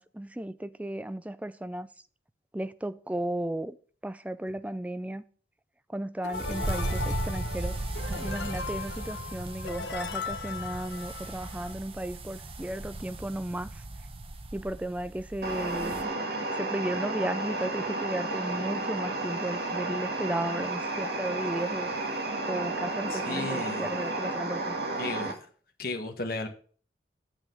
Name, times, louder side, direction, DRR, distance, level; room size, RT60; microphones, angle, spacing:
voice 1, 0.0-1.9 2.5-3.8 4.0-5.2 5.9-13.8 14.5-16.1 16.5-21.9 22.5-24.8, right 1 dB, 10° right, 0.4 m, -34 dB
sound 1, 6.2-11.7, left 5 dB, 75° left, 1.0 m, -38 dB
sound 2, 6.3-16.0, right 2 dB, 30° right, 0.9 m, -37 dB
sound 3, 15.4-25.3, right 2 dB, 60° right, 2.0 m, -32 dB
voice 2, 23.1-23.9 25.0-25.3 25.8-26.5, left 2 dB, 55° left, 1.5 m, -34 dB
8.9 x 6.9 x 5.4 m
head